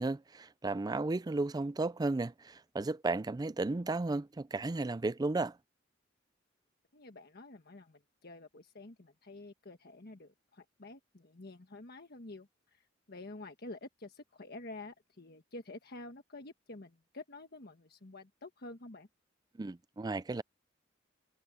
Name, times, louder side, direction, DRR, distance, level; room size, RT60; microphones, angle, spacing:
voice 1, 0.0-5.6 19.6-20.4, right 2 dB, 20° right, 0.4 m, -34 dB
voice 2, 6.9-19.1, left 2 dB, 55° left, 1.4 m, -49 dB
head